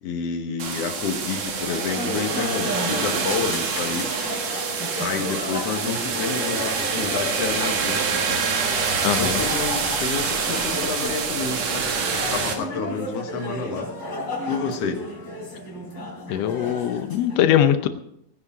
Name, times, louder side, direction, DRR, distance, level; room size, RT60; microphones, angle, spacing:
voice 1, 0.0-4.1 5.0-8.4 9.0-11.9 12.3-13.9 14.5-15.1, left 5 dB, 55° left, 4 dB, 2.1 m, -29 dB
sound 1, 0.6-12.5, right 5 dB, 55° right, 2.5 m, -26 dB
sound 2, 1.6-17.4, left 1 dB, 35° left, 4.3 m, -33 dB
voice 2, 9.0-9.4 16.3-17.9, left 10 dB, 90° left, 9 dB, 1.4 m, -21 dB
17.5 x 9.7 x 4.9 m, 0.75 s
omnidirectional pair, 3.9 m